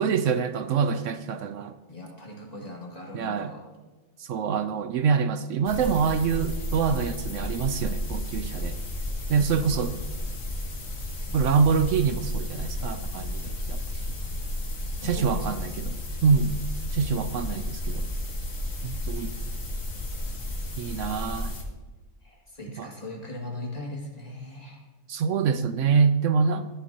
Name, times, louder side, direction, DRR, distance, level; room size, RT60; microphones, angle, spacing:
voice 1, 0.0-1.7 3.1-3.5 4.2-8.8 9.3-9.9 11.3-13.8 15.0-16.0 16.2-16.6 16.9-18.1 18.8-19.3 20.8-21.5 22.8-22.9 25.1-26.7, right 6 dB, 75° right, 10 dB, 0.9 m, -25 dB
voice 2, 1.9-3.6 6.0-6.7 9.3-9.9 14.9-15.8 18.7-19.4 22.2-24.9, left 1 dB, 30° left, -2 dB, 2.2 m, -40 dB
sound 1, 5.6-21.6, left 1 dB, 85° left, 2.0 m, -32 dB
14.0 x 11.0 x 2.9 m, 1.3 s
omnidirectional pair, 1.4 m